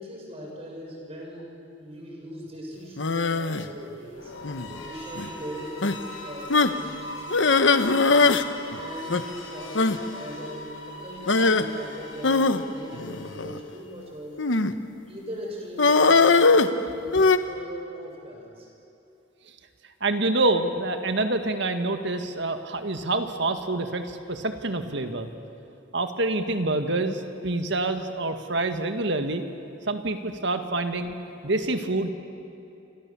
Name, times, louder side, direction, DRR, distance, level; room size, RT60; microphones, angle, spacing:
voice 1, 0.0-4.3 4.7-8.3 8.7-14.4 15.1-18.7, equal, 30° right, 0 dB, 6.3 m, -40 dB
sound 1, 3.0-3.7 4.4-4.8 5.1-5.3 5.8-6.0 6.5-6.8 7.3-8.5 8.7-8.8 9.1-9.2 9.7-10.0 11.3-11.6 12.2-13.6 14.4-14.8 15.8-17.4, left 3 dB, 70° left, 1.1 m, -20 dB
sound 2, 4.1-14.0, left 1 dB, 85° left, 5.6 m, -40 dB
voice 2, 20.0-25.3 25.9-29.4 29.9-31.2 31.4-32.1, right 2 dB, 65° right, 7 dB, 1.9 m, -27 dB
29.5 x 26.0 x 7.3 m, 2.9 s
head